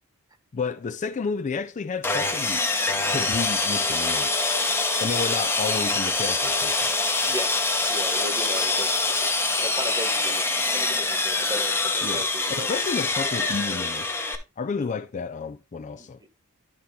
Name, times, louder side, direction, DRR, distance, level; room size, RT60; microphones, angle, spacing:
voice 1, 0.5-2.7 3.1-4.4 5.0-6.9 12.0-12.3 12.6-14.1 14.6-16.2, left 5 dB, 35° left, 0.4 m, -31 dB
Sawing, 2.0-14.4, left 3 dB, 10° left, 0.8 m, -25 dB
voice 2, 7.9-12.7 16.0-16.3, equal, 15° right, 1.1 m, -36 dB
11.0 x 4.2 x 3.6 m
head